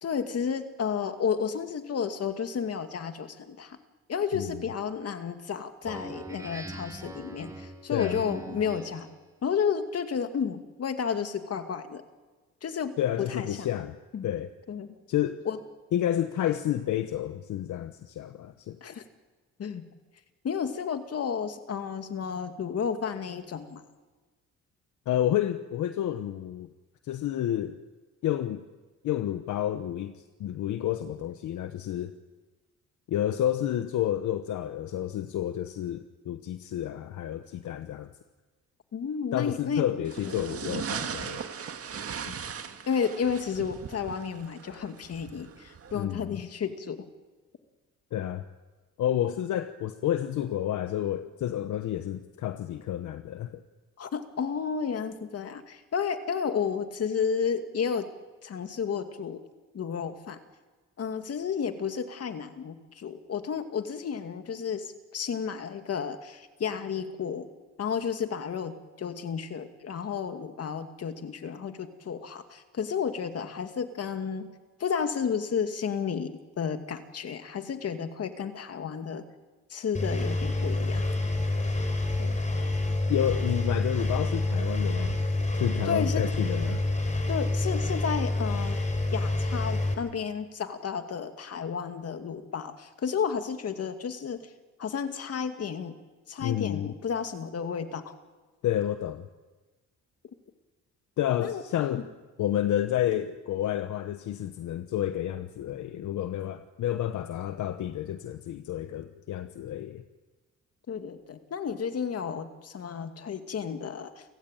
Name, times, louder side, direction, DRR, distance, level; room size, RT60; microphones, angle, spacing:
voice 1, 0.0-3.8 4.1-9.1 9.4-12.0 12.6-13.7 14.1-14.3 14.7-14.9 15.5-15.6 18.8-19.0 19.6-19.9 20.4-23.8 38.9-39.9 42.2-42.4 42.9-47.1 54.0-58.1 58.4-59.4 59.7-60.4 61.0-67.5 67.8-74.5 74.8-79.2 79.7-81.1 82.2-82.3 85.8-86.3 87.3-88.8 89.1-94.4 94.8-95.9 96.3-98.1 101.4-101.6 101.9-102.0 110.9-114.2, left 7 dB, 55° left, 7 dB, 2.4 m, -32 dB
voice 2, 4.3-4.6 7.9-8.2 13.0-14.0 14.2-14.5 15.1-15.4 15.9-18.8 25.1-26.7 27.0-27.8 28.2-28.6 29.0-32.1 33.1-38.1 39.3-41.4 45.9-46.4 48.1-48.4 49.0-53.6 83.1-85.2 85.6-86.8 96.4-96.9 98.6-99.3 101.2-102.1 102.4-110.0, left 11 dB, 75° left, 9 dB, 1.1 m, -30 dB
Speech synthesizer, 5.8-9.2, right 1 dB, 10° right, 2.6 m, -42 dB
sound 1, 40.0-46.0, right 7 dB, 50° right, 1.9 m, -38 dB
Engine, 79.9-89.9, left 2 dB, 25° left, 4.5 m, -28 dB
29.5 x 16.0 x 9.1 m, 1.3 s
cardioid pair, 90°, 30 cm